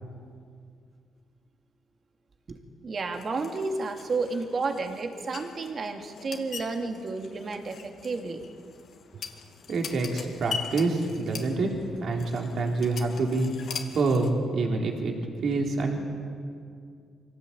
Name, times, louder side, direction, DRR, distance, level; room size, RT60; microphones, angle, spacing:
voice 1, 2.5-8.4, right 3 dB, 45° right, 4 dB, 2.8 m, -32 dB
sound 1, 3.1-14.3, left 6 dB, 60° left, 2.4 m, -42 dB
voice 2, 9.7-13.5 13.9-15.1 15.4-16.0, right 3 dB, 60° right, 1 dB, 3.8 m, -27 dB
24.5 x 17.0 x 8.8 m, 2.2 s
cardioid pair, 90°, 0 cm